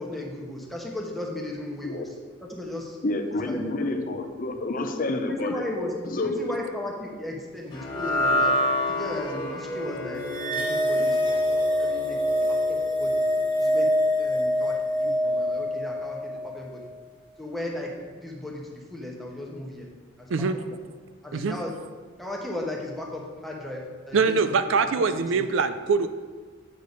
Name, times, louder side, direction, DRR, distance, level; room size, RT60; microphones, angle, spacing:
voice 1, 0.0-2.1 2.4-3.0 3.5-4.0 5.2-8.6 8.9-12.2 12.5-13.2 13.6-13.9 14.2-16.8 17.4-19.9 20.2-20.8 21.2-21.7 22.2-24.3 25.0-25.5, left 1 dB, ahead, -2 dB, 1.1 m, -36 dB
voice 2, 3.0-5.6 6.0-6.4, left 2 dB, 45° left, 6 dB, 0.6 m, -29 dB
Bowed string instrument, 7.7-12.6, left 5 dB, 90° left, 1.0 m, -43 dB
sound 1, 7.7-14.1, equal, 25° left, 1.2 m, -29 dB
sound 2, 10.3-16.8, left 1 dB, 25° right, 0.9 m, -25 dB
voice 3, 24.1-26.1, right 4 dB, 70° right, 11 dB, 0.4 m, -23 dB
8.5 x 6.5 x 4.0 m, 1.5 s
head